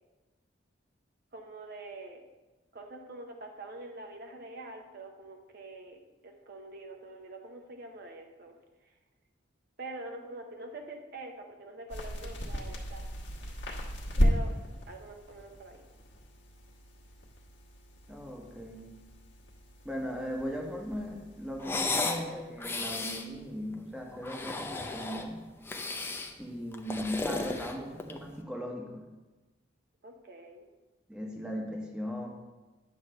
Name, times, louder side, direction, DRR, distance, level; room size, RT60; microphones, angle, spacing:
voice 1, 1.3-2.2 2.7-6.0 6.2-8.6 8.8-8.9 9.8-13.1 14.2-14.5 14.9-15.8 30.0-30.6, right 2 dB, 55° right, 3 dB, 0.7 m, -45 dB
sound 1, 11.9-22.1, equal, 70° left, 1.3 m, -35 dB
voice 2, 18.1-18.8 19.8-25.4 26.4-29.0 31.1-32.3, equal, 5° right, 0 dB, 0.9 m, -38 dB
sound 2, 21.6-22.2 22.6-23.3 24.1-25.3 25.7-26.3 26.7-28.3, left 3 dB, 10° left, 0.5 m, -34 dB
9.3 x 3.2 x 6.4 m, 1.2 s
head